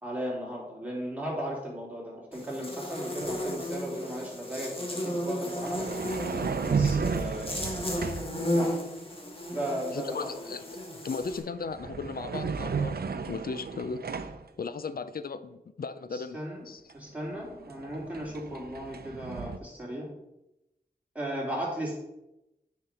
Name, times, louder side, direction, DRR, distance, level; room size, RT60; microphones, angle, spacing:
voice 1, 0.0-5.9 6.6-7.8 8.5-8.8 9.5-10.2 16.1-16.7 16.9-20.1 21.2-22.0, right 1 dB, 10° right, -5 dB, 3.4 m, -36 dB
Buzz, 2.3-11.4, left 1 dB, 35° left, 1.8 m, -34 dB
sound 1, 3.2-3.4 5.5-8.4 11.0-11.3 11.6-14.5 16.9-17.0 17.3-19.6, right 5 dB, 85° right, 0.6 m, -33 dB
voice 2, 9.9-13.0 13.3-14.0 14.6-16.4 16.7-16.8, left 4 dB, 70° left, 12 dB, 0.6 m, -36 dB
9.4 x 5.3 x 4.5 m, 0.92 s
wide cardioid pair, 95°, 16 cm